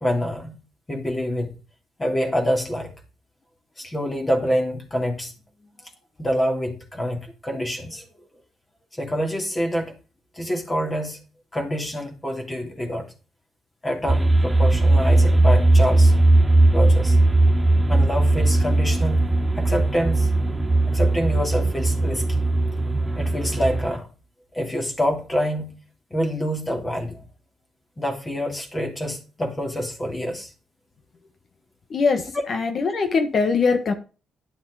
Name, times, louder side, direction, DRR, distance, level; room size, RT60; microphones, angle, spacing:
voice 1, 0.0-0.6 0.9-1.5 2.0-2.9 3.8-5.3 6.2-8.0 9.0-9.9 10.4-11.2 11.5-13.1 13.8-16.2 16.7-17.2 17.9-20.3 20.9-22.2 23.2-24.1 24.5-25.8 26.1-27.2 28.0-30.5, equal, 20° left, 3 dB, 3.0 m, -26 dB
sound 1, 14.1-24.0, right 2 dB, 10° right, 2.6 m, -18 dB
voice 2, 31.9-32.2 32.5-33.9, left 4 dB, 50° left, 8 dB, 1.6 m, -21 dB
10.5 x 7.0 x 4.9 m, 0.33 s
cardioid pair, 90°, 0 cm